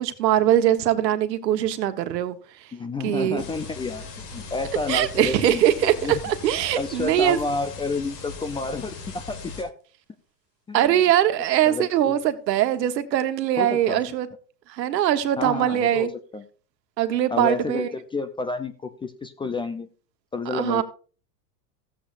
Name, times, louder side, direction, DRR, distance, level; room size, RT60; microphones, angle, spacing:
voice 1, 0.0-2.4 3.0-3.4 4.9-7.4 10.7-14.3 14.7-16.1 17.0-17.9 20.5-20.8, right 11 dB, 85° right, 1.3 m, -22 dB
voice 2, 2.7-4.0 4.3-5.6 6.0-6.1 6.8-9.7 10.7-10.9 11.7-12.2 13.6-14.0 15.4-16.4 17.3-19.9 20.3-20.8, left 3 dB, 10° left, 0.4 m, -30 dB
sound 1, 3.4-9.6, left 5 dB, 70° left, 3.2 m, -39 dB
15.0 x 8.4 x 2.6 m
hypercardioid pair, 115°, 49 cm